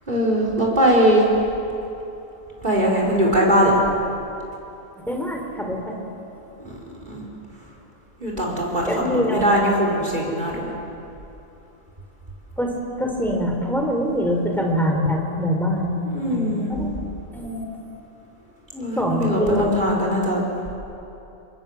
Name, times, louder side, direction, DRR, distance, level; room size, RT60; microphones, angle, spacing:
voice 1, 0.1-1.3 2.6-3.8 6.6-6.7 7.1-7.2 8.2-10.7 16.0-16.7 18.8-20.4, equal, 40° right, -2 dB, 5.4 m, -21 dB
voice 2, 5.1-6.0 8.9-9.5 12.6-12.7 13.0-16.0 16.3-16.9 17.3-17.7 18.7-19.9, equal, ahead, 1 dB, 4.3 m, -24 dB
28.0 x 23.0 x 7.5 m, 2.9 s
omnidirectional pair, 1.2 m